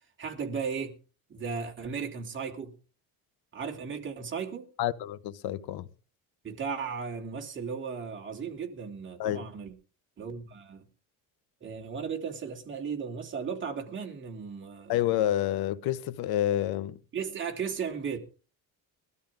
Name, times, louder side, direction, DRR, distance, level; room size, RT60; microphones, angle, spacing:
voice 1, 0.2-1.0 1.3-2.7 3.5-4.7 6.4-9.7 10.2-10.9 11.6-15.1 17.1-18.2, right 6 dB, 30° right, 3.2 m, -36 dB
voice 2, 4.8-5.8 9.2-9.4 14.9-17.0, left 12 dB, 80° left, 1.1 m, -28 dB
20.5 x 13.0 x 3.7 m
cardioid pair, 135°, 37 cm